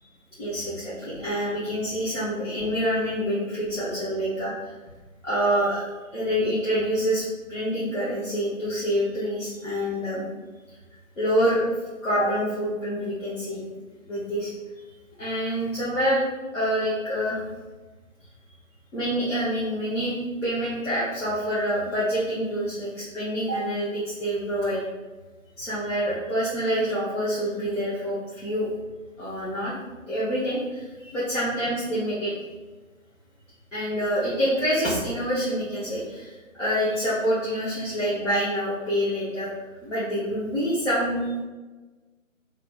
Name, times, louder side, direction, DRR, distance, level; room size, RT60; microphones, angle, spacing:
voice 1, 0.4-4.8 5.2-5.8 6.1-7.2 7.5-10.3 11.2-11.7 12.0-13.6 14.1-14.5 15.2-16.2 16.5-17.4 18.9-24.8 25.6-28.7 29.2-29.7 30.1-32.3 33.7-36.3 36.6-39.5 39.8-41.2, equal, 60° left, -10 dB, 1.0 m, -26 dB
2.9 x 2.0 x 3.3 m, 1.2 s
figure-of-eight pair, 155°, 41 cm